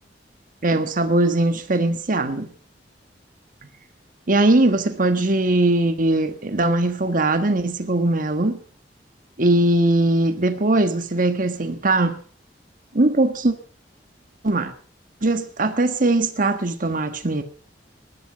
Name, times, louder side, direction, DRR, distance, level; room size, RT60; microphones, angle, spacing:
voice 1, 0.6-2.5 4.3-8.6 9.4-12.2 12.9-13.5 14.4-14.7 15.2-17.4, right 2 dB, 50° right, 1.4 m, -20 dB
19.5 x 12.5 x 5.1 m
head